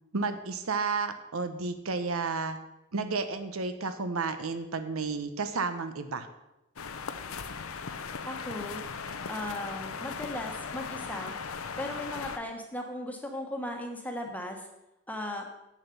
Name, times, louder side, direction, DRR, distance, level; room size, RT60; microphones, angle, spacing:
voice 1, 0.1-2.6 2.9-6.3, right 4 dB, 75° right, 9 dB, 0.9 m, -32 dB
sound 1, 6.8-12.4, left 5 dB, 75° left, 0.7 m, -38 dB
voice 2, 8.3-8.8 9.3-11.4 11.8-14.7 15.1-15.5, left 1 dB, 5° left, 2 dB, 1.3 m, -37 dB
8.2 x 7.4 x 6.8 m, 0.92 s
head